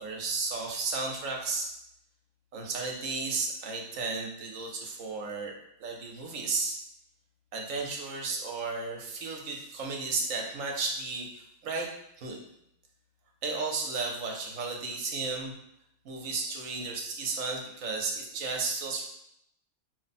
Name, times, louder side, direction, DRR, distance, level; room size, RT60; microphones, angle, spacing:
voice 1, 0.0-1.7 2.5-5.5 5.8-6.8 7.5-11.9 12.2-12.4 13.4-15.5 16.0-19.1, right 4 dB, 75° right, 1 dB, 1.2 m, -33 dB
4.7 x 2.1 x 4.1 m, 0.77 s
omnidirectional pair, 1.4 m